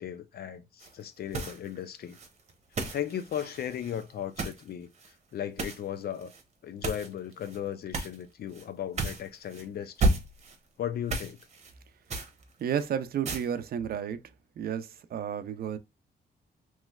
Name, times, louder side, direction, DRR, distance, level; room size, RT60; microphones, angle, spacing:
voice 1, 0.0-2.2 2.9-4.9 5.3-6.3 6.6-10.1 10.8-11.4, left 10 dB, 65° left, 0.5 m, -36 dB
sound 1, 0.8-1.0 1.3-1.8 2.1-4.6 4.9-5.1 5.6-5.8 6.2-6.4 6.8-7.6 7.9-8.2 8.5-8.6 9.0-9.6 10.0-10.6 11.1-11.7 12.1-12.9 13.3-13.5, right 2 dB, 40° right, 0.9 m, -33 dB
voice 2, 12.6-14.2 14.6-15.8, right 8 dB, 60° right, 0.5 m, -32 dB
3.1 x 3.1 x 2.3 m
wide cardioid pair, 135°, 17 cm